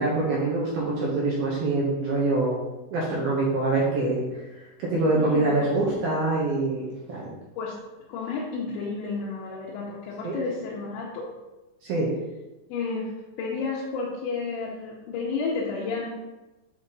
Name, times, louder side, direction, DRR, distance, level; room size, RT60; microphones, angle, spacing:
voice 1, 0.0-2.6 2.9-7.3 10.2-10.4 11.8-12.1, right 2 dB, 70° right, -6 dB, 2.4 m, -25 dB
voice 2, 5.1-5.7 7.5-7.8 8.1-11.3 12.7-13.1 13.4-16.1, left 4 dB, 85° left, -6 dB, 3.1 m, -31 dB
7.9 x 3.0 x 4.0 m, 1.1 s
omnidirectional pair, 5.1 m